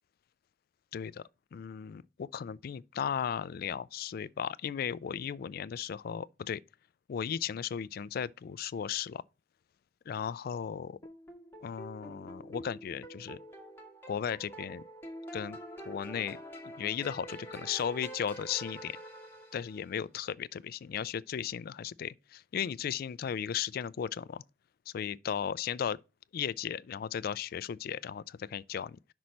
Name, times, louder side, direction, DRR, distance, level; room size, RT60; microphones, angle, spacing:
voice 1, 0.9-1.2 1.5-6.6 7.1-9.2 10.1-11.0 11.6-13.4 14.1-14.8 15.3-15.6 15.9-19.0 19.5-24.4 24.9-26.0 26.3-29.0, left 8 dB, 50° left, 0.3 m, -36 dB
sound 1, 11.0-19.9, right 1 dB, 10° left, 1.6 m, -46 dB
6.0 x 4.1 x 6.3 m
head